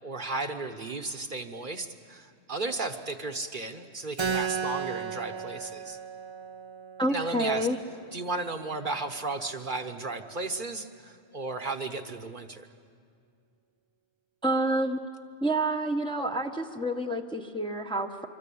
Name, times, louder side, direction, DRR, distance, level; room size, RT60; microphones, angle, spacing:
voice 1, 0.0-6.0 7.1-7.7 8.1-12.7, right 3 dB, 45° right, 6 dB, 1.2 m, -34 dB
Keyboard (musical), 4.2-9.3, right 6 dB, 30° right, 0.6 m, -36 dB
voice 2, 7.0-7.8 14.4-15.0 15.4-18.3, right 1 dB, 5° left, 3 dB, 0.9 m, -28 dB
25.0 x 25.0 x 8.6 m, 2.3 s
omnidirectional pair, 1.2 m